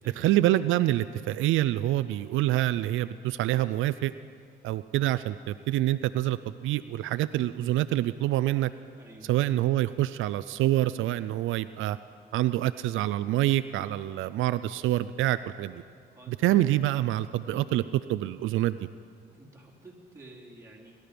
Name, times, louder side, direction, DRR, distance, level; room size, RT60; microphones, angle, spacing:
voice 1, 0.2-4.1 4.6-8.7 9.3-12.0 12.3-15.8 16.3-17.8 18.1-18.8, right 14 dB, 80° right, 13 dB, 0.4 m, -26 dB
voice 2, 9.0-9.3 13.8-14.2 16.1-16.5 17.5-17.8 19.3-20.9, right 1 dB, 15° right, -3 dB, 3.6 m, -50 dB
21.0 x 12.0 x 5.1 m, 2.2 s
cardioid pair, 90°, 20 cm